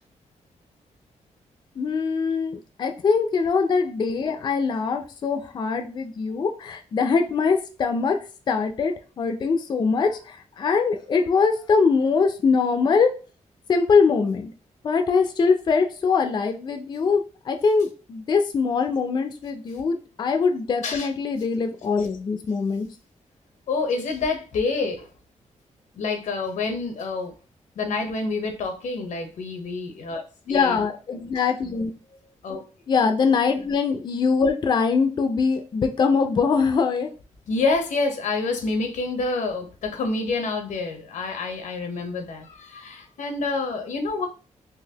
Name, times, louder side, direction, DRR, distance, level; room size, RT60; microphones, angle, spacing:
voice 1, 1.8-8.2 8.5-13.1 13.7-14.5 14.8-22.9 30.5-31.9 32.9-37.1, left 5 dB, 35° left, 0.3 m, -22 dB
voice 2, 23.7-25.1 26.0-27.3 27.8-30.2 30.5-30.8 32.4-32.6 37.5-44.3, left 3 dB, 85° left, 0.7 m, -27 dB
3.8 x 2.7 x 2.8 m
wide cardioid pair, 150°, 12 cm